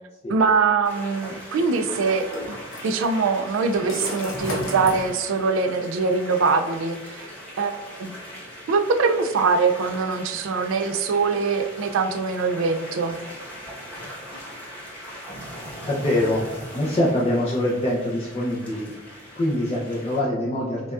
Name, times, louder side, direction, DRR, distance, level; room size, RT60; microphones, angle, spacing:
voice 1, 0.3-2.3 2.8-7.3 7.6-8.2 8.7-13.2, right 4 dB, 75° right, 7 dB, 0.3 m, -23 dB
sound 1, 0.8-1.0 2.3-3.0 3.9-4.9, left 1 dB, 75° left, 0.8 m, -33 dB
sound 2, 0.8-20.2, equal, 10° left, 1.1 m, -39 dB
voice 2, 15.8-16.5 16.7-18.9 19.3-20.9, left 1 dB, 30° left, -5 dB, 0.5 m, -24 dB
4.9 x 2.3 x 2.4 m, 1.1 s
head